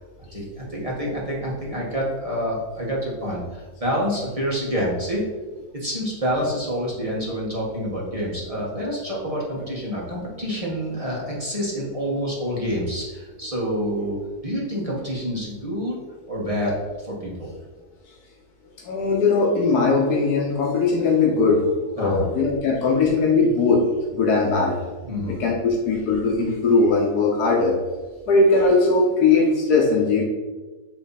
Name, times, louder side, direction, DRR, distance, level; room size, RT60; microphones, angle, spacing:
voice 1, 0.3-5.2 5.7-14.2 14.4-15.9 16.3-17.5 22.0-22.3 25.0-25.4, equal, 25° right, -4 dB, 1.5 m, -27 dB
voice 2, 18.8-21.6 22.0-23.8 24.1-24.8 25.3-27.8 28.3-30.2, left 3 dB, 85° left, -2 dB, 1.6 m, -19 dB
8.6 x 3.4 x 4.1 m, 1.3 s
omnidirectional pair, 1.6 m